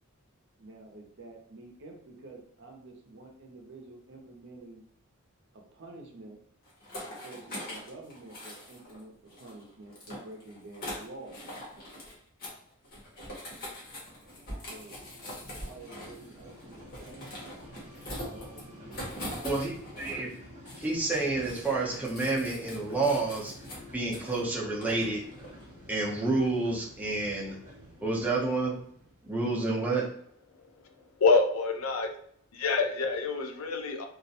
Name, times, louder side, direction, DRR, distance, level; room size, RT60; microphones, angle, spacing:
voice 1, 0.6-4.8 5.5-6.4 7.2-11.5 14.7-15.0 15.6-17.4 18.2-19.2 29.6-29.9, right 2 dB, 60° right, 1 dB, 0.6 m, -48 dB
sound 1, 6.7-9.0 9.3-12.1 12.4-12.6 12.8-20.3 20.6-24.4 24.8-25.7, equal, 45° left, 0.9 m, -43 dB
sound 2, 13.3-29.9, equal, 35° right, 1.0 m, -50 dB
voice 2, 19.4-20.3 20.8-23.5 23.9-25.2 25.9-27.5 28.0-28.8 29.2-30.1, right 3 dB, 10° right, -4 dB, 0.6 m, -29 dB
voice 3, 31.2-32.1 32.5-34.1, left 4 dB, 80° left, 5 dB, 0.4 m, -26 dB
2.4 x 2.1 x 2.7 m, 0.63 s
head